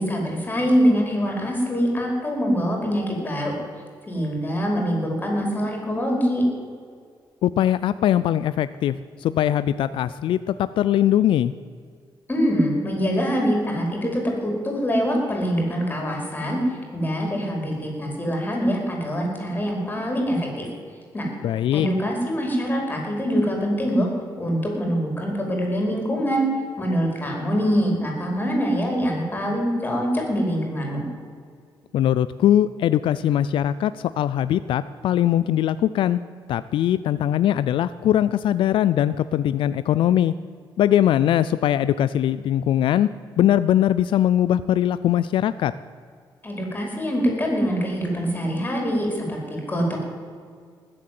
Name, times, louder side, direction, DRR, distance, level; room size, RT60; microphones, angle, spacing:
voice 1, 0.0-3.6 4.1-6.4 12.3-20.7 21.1-21.3 21.7-24.1 24.4-26.4 26.8-31.0 46.4-50.0, equal, 20° left, 1 dB, 4.8 m, -24 dB
voice 2, 7.4-11.5 21.4-21.9 31.9-36.2 36.5-40.3 40.8-43.1 43.4-45.7, left 11 dB, 80° left, 15 dB, 0.4 m, -21 dB
20.5 x 7.8 x 7.7 m, 2.1 s
cardioid pair, 115°, 9 cm